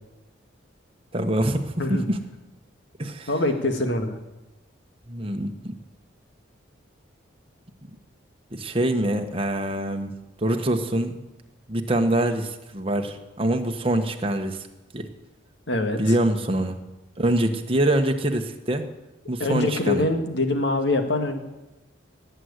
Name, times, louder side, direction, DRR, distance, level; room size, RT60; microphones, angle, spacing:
voice 1, 1.1-2.2 3.0-3.3 5.1-5.8 8.5-11.2 11.7-14.7 14.9-15.1 16.0-16.8 17.2-18.9 19.3-20.1, right 1 dB, 30° right, 5 dB, 1.3 m, -25 dB
voice 2, 3.3-4.2 15.7-16.0 19.4-21.4, left 2 dB, 65° left, 6 dB, 1.9 m, -24 dB
18.0 x 7.9 x 9.7 m, 1.0 s
head